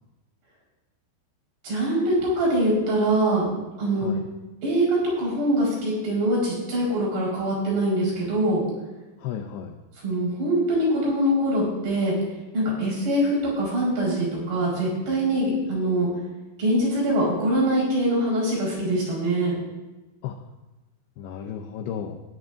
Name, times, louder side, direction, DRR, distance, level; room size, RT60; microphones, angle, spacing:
voice 1, 1.6-3.5 3.8-4.1 4.6-8.6 10.0-12.1 12.5-16.1 16.6-19.5, right 1 dB, 60° right, -5 dB, 6.4 m, -23 dB
voice 2, 3.9-4.3 9.2-9.8 20.2-20.4 21.2-22.2, left 8 dB, 85° left, 4 dB, 2.2 m, -33 dB
20.0 x 11.0 x 2.6 m, 1.1 s
omnidirectional pair, 5.4 m